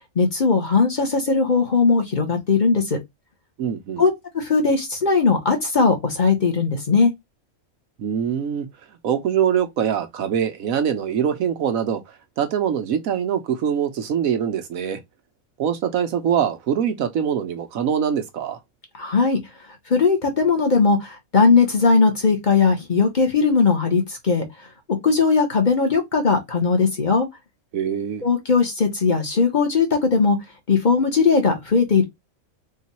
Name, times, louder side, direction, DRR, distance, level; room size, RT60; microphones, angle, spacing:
voice 1, 0.2-3.0 4.0-7.1 19.0-19.4 19.9-24.4 25.0-27.3 28.2-30.4 30.7-32.0, left 4 dB, 35° left, 1.1 m, -19 dB
voice 2, 3.6-4.0 8.0-8.7 9.0-15.0 15.6-18.6 27.7-28.2, right 8 dB, 75° right, 1.2 m, -23 dB
3.8 x 2.4 x 4.2 m
omnidirectional pair, 1.5 m